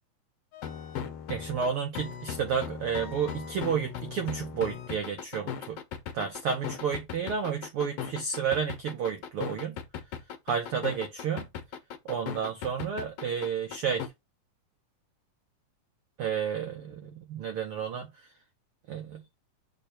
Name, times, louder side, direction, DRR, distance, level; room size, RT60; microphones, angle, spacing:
sound 1, 0.5-14.1, left 8 dB, 70° left, 1.5 m, -38 dB
voice 1, 1.3-5.8 6.1-9.8 10.5-11.5 12.0-14.1 16.2-18.1 18.9-19.2, right 7 dB, 85° right, 1.2 m, -31 dB
6.8 x 3.5 x 4.3 m
omnidirectional pair, 3.8 m